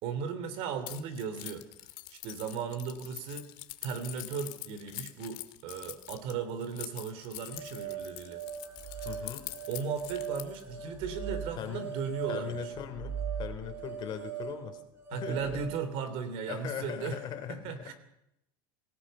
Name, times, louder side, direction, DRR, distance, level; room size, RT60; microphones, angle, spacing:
voice 1, 0.0-1.7 2.1-3.5 3.8-8.5 8.9-9.0 9.7-12.7 15.1-17.2 17.5-17.9, right 6 dB, 55° right, 11 dB, 3.4 m, -36 dB
Keys jangling, 0.9-10.6, left 20 dB, 65° left, 1.9 m, -44 dB
sound 1, 7.5-15.8, right 8 dB, 20° right, 7.0 m, -40 dB
voice 2, 9.1-9.4 11.6-11.9 12.3-14.8 15.1-15.6 16.5-17.9, left 9 dB, 40° left, 7 dB, 3.5 m, -39 dB
26.0 x 17.5 x 5.7 m, 0.81 s
supercardioid pair, 140°, 12 cm